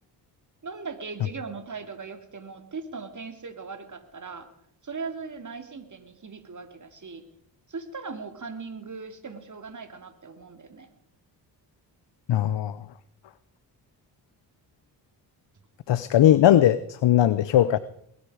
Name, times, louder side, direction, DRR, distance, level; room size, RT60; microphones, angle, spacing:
voice 1, 0.6-4.5 4.8-7.2 7.7-10.9, right 4 dB, 40° right, 8 dB, 2.7 m, -39 dB
voice 2, 12.3-12.8 15.9-17.8, left 11 dB, 60° left, 15 dB, 0.8 m, -19 dB
21.0 x 12.5 x 5.0 m, 0.74 s
supercardioid pair, 55°, 48 cm